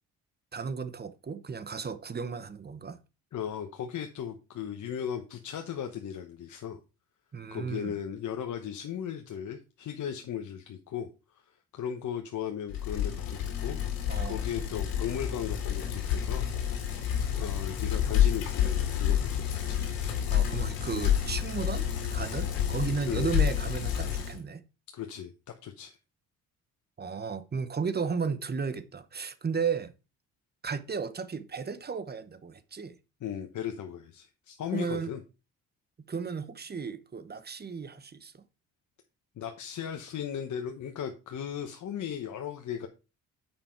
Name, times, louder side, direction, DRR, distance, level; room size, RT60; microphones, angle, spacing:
voice 1, 0.5-3.0 7.3-7.9 14.1-14.4 20.3-24.6 27.0-29.9 30.6-33.0 34.7-35.1 36.1-38.3, right 5 dB, 30° right, 1.0 m, -34 dB
voice 2, 3.3-6.8 7.5-11.1 11.7-16.5 17.4-19.8 23.1-23.4 24.9-25.3 25.6-26.0 33.2-35.2 39.4-42.9, left 8 dB, 60° left, 1.0 m, -37 dB
Bicycle, 12.7-24.4, left 10 dB, 85° left, 2.2 m, -29 dB
7.2 x 5.4 x 4.4 m
supercardioid pair, 65°, 34 cm